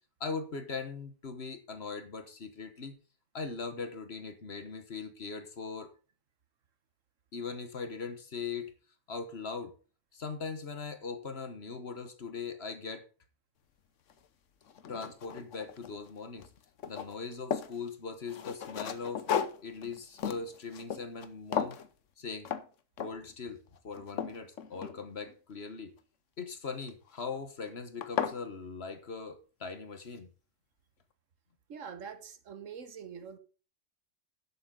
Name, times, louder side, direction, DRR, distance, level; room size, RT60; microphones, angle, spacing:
voice 1, 0.2-3.0 3.3-5.9 7.3-8.7 9.1-9.7 10.1-13.1 14.9-16.5 16.9-19.3 19.6-21.8 22.2-22.5 23.0-25.9 26.4-30.3, left 4 dB, 55° left, 1.6 m, -40 dB
sound 1, 14.1-14.2 14.7-16.1 16.4-17.8 18.3-21.3 21.5-21.9 22.4-22.7 23.0-23.3 23.8-25.3 26.8-27.2 27.7-27.8 28.0-28.4, left 8 dB, 80° left, 1.2 m, -35 dB
voice 2, 31.7-33.4, right 7 dB, 85° right, 1.5 m, -44 dB
11.5 x 7.7 x 3.9 m
omnidirectional pair, 1.3 m